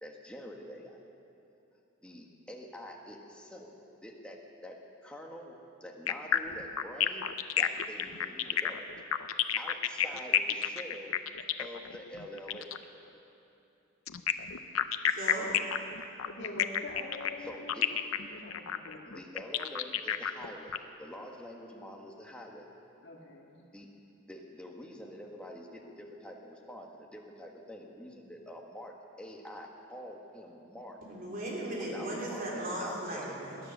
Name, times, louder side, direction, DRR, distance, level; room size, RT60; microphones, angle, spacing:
voice 1, 0.0-1.0 2.0-3.7 4.0-7.3 7.5-8.9 9.6-11.2 11.6-12.7 17.4-17.9 19.0-22.6 23.7-23.9 24.3-31.0 31.8-33.4, equal, 5° left, 0 dB, 1.4 m, -46 dB
sound 1, 6.1-12.8 14.1-20.8, left 9 dB, 85° left, 0.6 m, -30 dB
voice 2, 15.1-15.5 31.1-33.6, right 1 dB, 45° right, -4 dB, 3.4 m, -37 dB
voice 3, 16.2-18.0 18.3-19.1 23.0-23.6, left 2 dB, 55° left, 0 dB, 2.0 m, -44 dB
20.0 x 10.0 x 6.7 m, 2.8 s
head